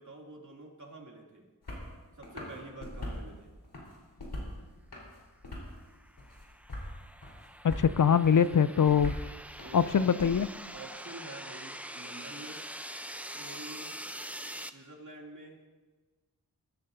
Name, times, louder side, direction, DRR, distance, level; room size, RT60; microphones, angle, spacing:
voice 1, 0.0-1.5 2.1-3.5 9.0-9.2 9.6-10.1 10.7-12.6 13.3-14.0 14.7-15.7, right 2 dB, 50° right, -1 dB, 2.7 m, -48 dB
sound 1, 1.6-1.9 2.2-3.2 3.6-4.6 4.9-5.8 6.2-6.9 7.2-7.9 8.2-10.2, left 1 dB, 85° left, 4.1 m, -41 dB
sound 2, 5.7-14.7, equal, 5° right, 0.6 m, -44 dB
voice 2, 7.6-9.1 9.7-10.5, left 7 dB, 55° left, 15 dB, 0.4 m, -23 dB
22.5 x 14.0 x 2.7 m, 1.3 s
wide cardioid pair, 75°, 38 cm